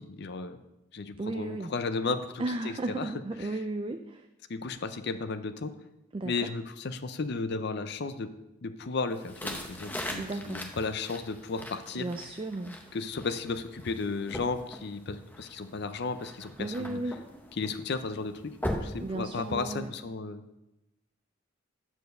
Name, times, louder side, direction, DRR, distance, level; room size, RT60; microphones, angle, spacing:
voice 1, 0.2-0.6 0.9-3.1 3.4-3.5 4.5-5.7 6.2-8.3 8.6-12.1 12.9-17.0 17.6-18.5 18.8-20.4, left 4 dB, 50° left, 11 dB, 0.5 m, -34 dB
voice 2, 1.2-1.7 2.4-4.3 6.1-6.5 10.2-10.6 11.9-12.8 16.6-17.2 19.0-19.9, right 2 dB, 25° right, 6 dB, 0.3 m, -34 dB
sound 1, 9.1-19.9, left 1 dB, 10° left, 0.7 m, -41 dB
8.3 x 4.6 x 6.5 m, 0.93 s
head